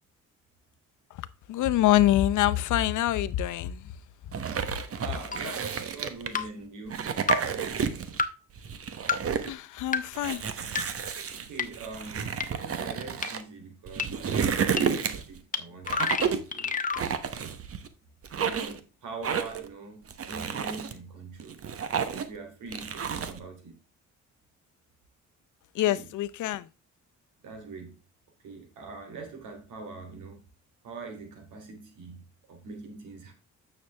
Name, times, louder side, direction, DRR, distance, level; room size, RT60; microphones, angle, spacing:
voice 1, 1.5-3.9 9.5-10.4 25.7-26.7, left 13 dB, 80° left, 0.7 m, -25 dB
sound 1, 4.3-6.4 6.9-8.2 8.6-9.5 10.1-13.4 13.9-15.4 15.8-16.5 17.0-17.9 18.2-18.8 19.2-19.7 20.1-20.9 21.4-22.4 22.7-23.4, right 7 dB, 50° right, 1.1 m, -31 dB
voice 2, 5.0-7.1 11.3-16.8 17.3-17.6 18.4-21.6 22.1-23.8 25.8-26.1 27.4-28.0 28.4-30.4 30.8-33.3, right 3 dB, 80° right, 3.2 m, -43 dB
sound 2, 5.3-5.4 6.3-6.5 7.3-7.4 8.2-8.3 9.1-9.2 9.9-10.0 10.8-10.9 11.6-11.7 12.4-12.5 13.2-13.3 14.0-14.1 14.8-14.9 15.5-15.6 15.9-17.0, left 5 dB, 25° left, 1.1 m, -27 dB
9.5 x 6.9 x 3.4 m
cardioid pair, 90°, 30 cm